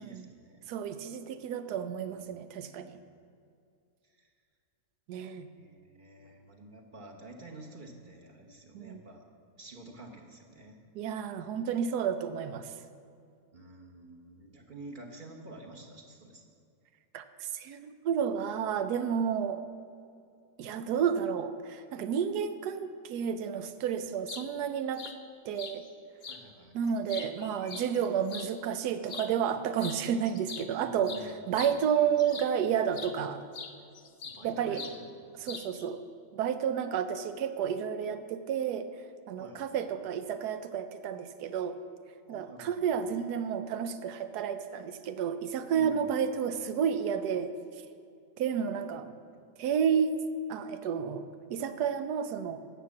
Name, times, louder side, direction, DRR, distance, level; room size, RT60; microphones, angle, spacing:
voice 1, 0.0-0.6 2.1-3.2 4.0-4.3 5.5-9.3 9.6-10.8 13.5-16.5 26.3-26.8 30.7-31.6 34.2-35.1 39.4-39.6 42.3-42.9 45.7-46.1 48.9-49.1, right 2 dB, 35° right, 1 dB, 1.1 m, -49 dB
voice 2, 0.7-3.0 5.1-5.5 8.7-9.0 10.9-12.7 17.1-19.6 20.6-25.0 25.4-25.8 26.7-33.4 34.4-34.8 35.4-36.0 36.3-38.9 39.3-41.8 42.3-47.5 48.4-49.0 49.6-52.6, right 7 dB, 85° right, 10 dB, 1.2 m, -31 dB
sound 1, 24.0-24.4 25.0-25.1 25.6-25.8 26.2-26.4 26.9-28.5 29.0-29.3 29.8-30.0 30.2-32.6 32.9-33.1 33.5-34.4 34.7-35.0 35.4-35.9, left 5 dB, 60° left, 0.5 m, -42 dB
9.5 x 7.1 x 7.1 m, 2.4 s
omnidirectional pair, 1.7 m